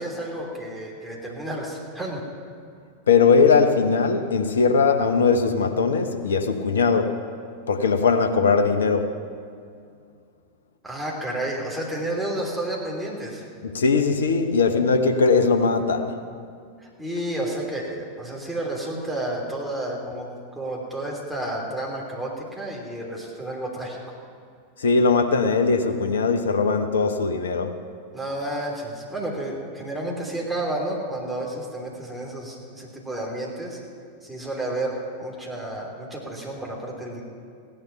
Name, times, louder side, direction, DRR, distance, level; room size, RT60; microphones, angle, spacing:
voice 1, 0.0-2.2 10.8-13.5 16.8-24.2 28.1-33.8 34.2-37.2, right 1 dB, 5° right, 3.2 m, -31 dB
voice 2, 3.1-7.2 7.7-9.2 13.6-16.2 24.8-27.8, left 4 dB, 65° left, 1.0 m, -20 dB
16.5 x 11.0 x 5.9 m
figure-of-eight pair, 90°, 0 cm